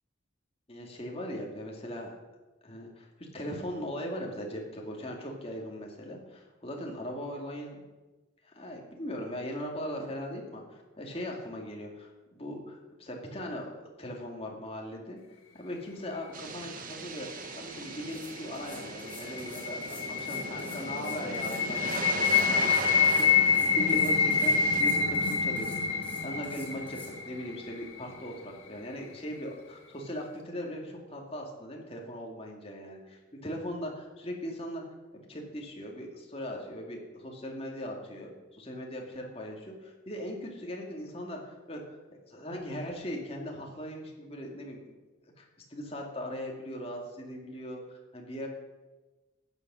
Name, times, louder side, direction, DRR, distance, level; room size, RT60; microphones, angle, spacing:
voice 1, 0.7-2.1 2.6-7.8 8.4-15.2 15.5-17.3 17.5-26.0 26.2-27.0 27.2-34.8 35.1-44.8 45.4-45.5 45.7-48.5, equal, 30° left, 0 dB, 2.2 m, -39 dB
sound 1, 16.3-24.8, right 3 dB, 45° right, 1.0 m, -38 dB
sound 2, 17.8-17.9 18.1-27.1, left 2 dB, 10° left, 2.5 m, -49 dB
sound 3, 18.9-27.9, left 6 dB, 85° left, 1.6 m, -27 dB
13.5 x 8.2 x 6.2 m, 1.2 s
head